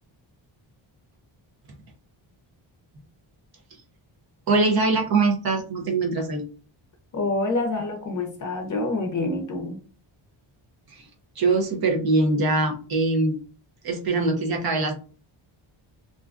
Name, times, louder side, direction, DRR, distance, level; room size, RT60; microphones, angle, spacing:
voice 1, 4.5-6.4 10.9-11.1 11.4-13.4 13.8-14.9, right 3 dB, 50° right, 0.7 m, -22 dB
voice 2, 7.1-9.8, left 2 dB, 40° left, 0.6 m, -27 dB
2.5 x 2.2 x 2.4 m
wide cardioid pair, 135°, 48 cm